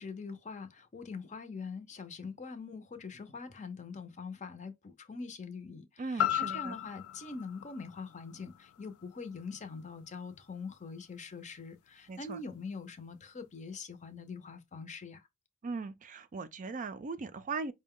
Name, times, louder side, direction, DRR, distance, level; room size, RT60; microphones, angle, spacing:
voice 1, 0.0-15.3, left 4 dB, 35° left, 0.6 m, -43 dB
voice 2, 6.0-6.8 12.1-12.4 15.6-17.7, right 4 dB, 35° right, 0.4 m, -39 dB
sound 1, 6.2-10.3 10.7-10.8, left 12 dB, 85° left, 0.3 m, -37 dB
5.1 x 2.2 x 3.6 m
head